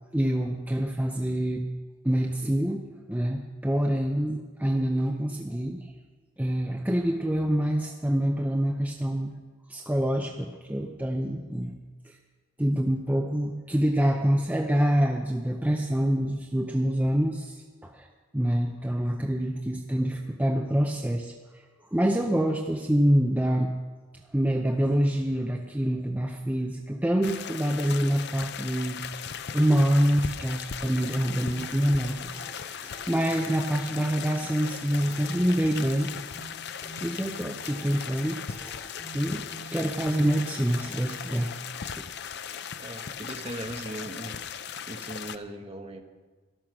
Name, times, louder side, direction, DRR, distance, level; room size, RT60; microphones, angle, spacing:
voice 1, 0.1-1.7 2.0-5.9 6.4-9.3 9.7-11.7 12.0-12.2 12.6-18.1 18.3-21.6 21.9-23.7 24.3-29.1 29.5-36.1 37.0-38.4 39.1-41.8, equal, 10° right, 2 dB, 0.6 m, -26 dB
sound 1, 27.2-45.4, left 7 dB, 55° left, 0.6 m, -38 dB
sound 2, 31.0-41.8, equal, 10° left, 2.4 m, -49 dB
voice 2, 42.8-44.3 44.9-46.0, right 1 dB, 30° right, 4 dB, 1.1 m, -38 dB
13.5 x 12.0 x 6.1 m, 1.4 s
head